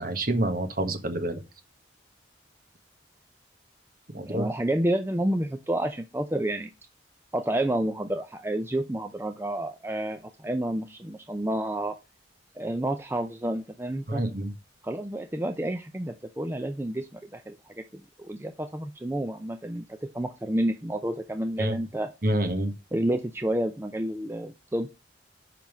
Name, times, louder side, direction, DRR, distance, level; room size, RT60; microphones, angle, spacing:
voice 1, 0.0-1.4 4.1-4.4 14.1-14.5 21.6-21.8 22.2-22.7, right 1 dB, 50° right, 1.5 m, -27 dB
voice 2, 4.2-6.7 7.3-12.0 12.6-14.2 14.8-22.1 22.9-24.9, right 1 dB, 10° right, 0.5 m, -30 dB
5.9 x 5.4 x 6.1 m
head